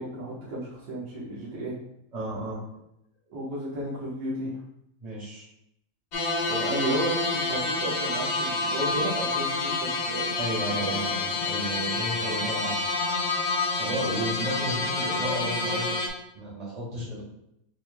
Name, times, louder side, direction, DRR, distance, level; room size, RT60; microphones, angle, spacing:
voice 1, 0.0-1.7 3.3-4.6 6.5-10.3 10.6-11.0, right 1 dB, 80° right, -10 dB, 1.9 m, -33 dB
voice 2, 2.1-2.6 5.0-5.4 10.4-12.9 13.8-15.9 16.3-17.2, right 1 dB, 25° right, -5 dB, 1.7 m, -33 dB
sound 1, 6.1-16.1, left 3 dB, 75° left, 0.5 m, -28 dB
5.8 x 3.1 x 2.3 m, 0.79 s
omnidirectional pair, 1.7 m